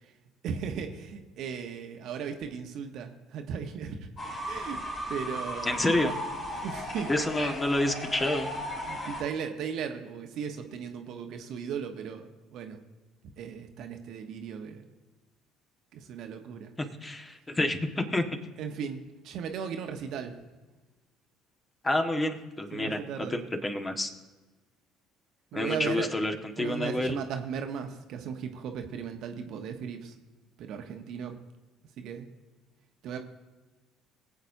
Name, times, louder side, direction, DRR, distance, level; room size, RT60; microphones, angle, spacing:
voice 1, 0.4-4.1 4.4-4.8 5.1-5.8 6.5-7.1 8.9-12.8 13.4-14.9 15.9-16.7 18.6-20.4 22.7-23.4 25.5-26.1 26.6-30.1 30.6-31.4 32.0-32.3 33.0-33.2, right 7 dB, 60° right, 5 dB, 1.1 m, -36 dB
Fowl / Bird, 4.2-9.2, left 1 dB, 40° left, 3.7 m, -36 dB
voice 2, 5.6-6.1 7.1-8.5 17.0-18.2 21.8-24.1 25.5-27.2, left 1 dB, 20° left, 4 dB, 1.5 m, -28 dB
22.5 x 8.0 x 2.7 m, 1.2 s
hypercardioid pair, 55°, 0 cm